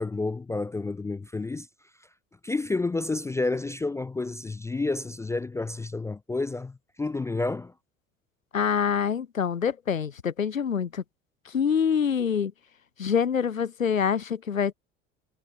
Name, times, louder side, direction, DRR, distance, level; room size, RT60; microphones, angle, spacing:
voice 1, 0.0-1.7 2.4-7.7, left 3 dB, 10° left, 0.4 m, -30 dB
voice 2, 8.5-11.0 11.5-12.5 13.0-14.7, left 7 dB, 90° left, 0.7 m, -25 dB
figure-of-eight pair, 65°, 39 cm